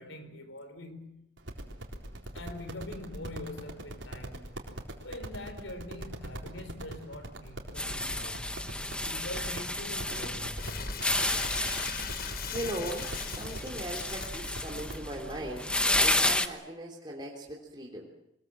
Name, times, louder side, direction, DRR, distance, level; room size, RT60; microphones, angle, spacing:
voice 1, 0.0-1.3 2.3-4.5 5.0-8.5 9.0-10.7, left 1 dB, 85° left, 4.5 m, -43 dB
sound 1, 1.4-15.0, right 1 dB, 75° right, 3.9 m, -42 dB
sound 2, 7.7-16.5, left 1 dB, 5° left, 1.0 m, -31 dB
Crumpling crinkling, 10.6-15.0, left 8 dB, 45° left, 1.1 m, -40 dB
voice 2, 12.5-18.1, right 1 dB, 25° right, 3.4 m, -39 dB
25.0 x 21.5 x 7.6 m
head